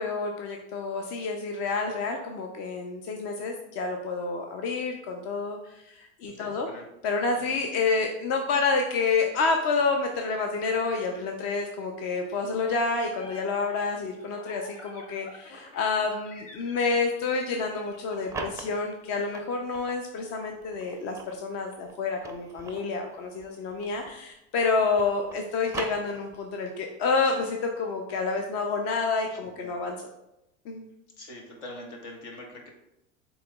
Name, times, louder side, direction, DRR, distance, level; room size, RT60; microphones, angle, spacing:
voice 1, 0.0-6.7 7.0-30.1 30.7-30.9, left 4 dB, 45° left, 3 dB, 0.6 m, -29 dB
voice 2, 6.3-6.8 7.4-7.5 29.3-29.7 31.2-32.7, left 1 dB, 70° left, 1 dB, 1.4 m, -44 dB
sound 1, 12.6-18.4, left 2 dB, 85° left, 0.8 m, -49 dB
sound 2, 17.9-20.0 20.6-24.3 24.6-26.6, right 4 dB, 10° right, 0.4 m, -41 dB
7.6 x 3.0 x 2.3 m, 0.86 s
hypercardioid pair, 85°, 36 cm